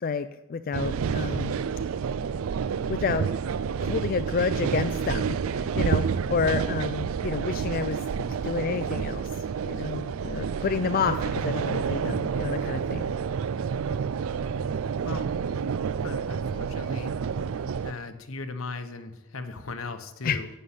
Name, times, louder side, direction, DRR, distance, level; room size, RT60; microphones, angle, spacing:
voice 1, 0.0-1.5 2.9-3.3 3.8-8.0 8.4-9.3 9.6-11.1 11.4-13.1 20.2-20.4, left 5 dB, 45° left, 10 dB, 0.3 m, -29 dB
sound 1, 0.7-17.9, right 6 dB, 85° right, 0.4 m, -29 dB
voice 2, 10.9-11.3 15.0-15.4 16.0-17.1 17.8-20.5, left 3 dB, 85° left, 8 dB, 1.1 m, -38 dB
11.5 x 5.5 x 8.2 m, 1.0 s
head